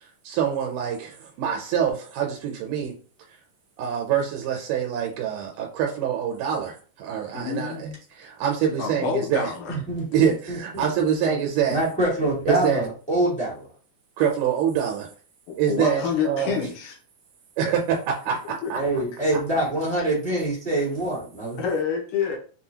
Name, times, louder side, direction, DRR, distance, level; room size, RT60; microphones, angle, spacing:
voice 1, 0.2-2.9 3.8-9.5 10.1-11.8 12.5-12.8 14.2-15.1 15.6-16.6 17.6-18.8, right 8 dB, 85° right, 2.2 m, -25 dB
voice 2, 7.3-7.8 8.8-9.8 15.5-17.0 18.6-18.7 21.6-22.4, left 6 dB, 80° left, 2.4 m, -27 dB
voice 3, 9.7-10.9 11.2-11.3 11.7-13.7 18.7-21.6, right 1 dB, 5° left, 0.8 m, -25 dB
6.0 x 2.3 x 2.8 m
omnidirectional pair, 3.6 m